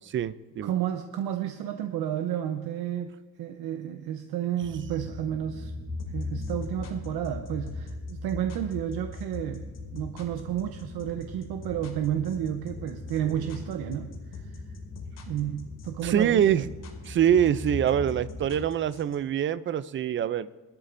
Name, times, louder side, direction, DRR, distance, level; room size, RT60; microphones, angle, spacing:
voice 1, 0.1-0.7 16.0-16.6 17.1-20.5, right 9 dB, 35° right, 16 dB, 0.4 m, -24 dB
voice 2, 0.6-5.7 6.1-9.7 9.9-14.6 15.3-16.4, right 10 dB, 85° right, 7 dB, 0.8 m, -31 dB
sound 1, 4.6-18.7, left 3 dB, 5° right, 2.4 m, -39 dB
sound 2, 6.0-19.2, left 5 dB, 60° left, 2.6 m, -46 dB
21.5 x 12.5 x 2.6 m, 1.3 s
cardioid pair, 155°, 37 cm